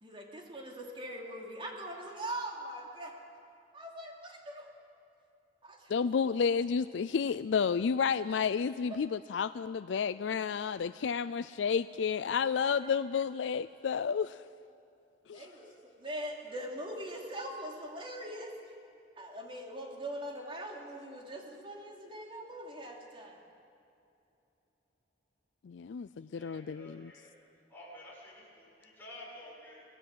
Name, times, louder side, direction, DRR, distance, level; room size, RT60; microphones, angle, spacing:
voice 1, 0.0-3.1 3.7-4.7 5.6-5.9 8.3-8.4 15.3-15.7 16.0-18.5 19.2-23.4, right 1 dB, 30° right, 0 dB, 3.3 m, -42 dB
voice 2, 5.9-14.4 15.3-15.5 25.6-27.1, left 6 dB, 85° left, 14 dB, 0.4 m, -31 dB
voice 3, 15.3-15.8 16.4-16.6 26.2-27.3 27.7-29.8, left 1 dB, 10° left, -6 dB, 7.2 m, -52 dB
25.0 x 18.0 x 7.8 m, 2.7 s
head